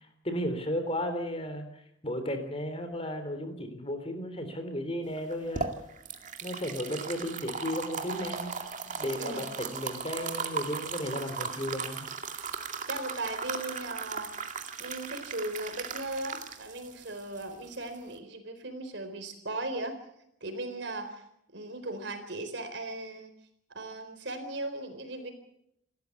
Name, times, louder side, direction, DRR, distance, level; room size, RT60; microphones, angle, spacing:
voice 1, 0.2-1.6 2.0-5.7 6.4-8.5 8.8-12.1, equal, 30° left, 8 dB, 3.4 m, -34 dB
sound 1, 5.2-18.1, right 5 dB, 40° right, 2.3 m, -37 dB
voice 2, 9.2-9.5 12.9-14.3 14.8-20.0 20.4-21.2 21.5-23.3 23.7-25.3, right 2 dB, 65° right, 8 dB, 4.2 m, -37 dB
28.0 x 14.0 x 8.3 m, 0.77 s
head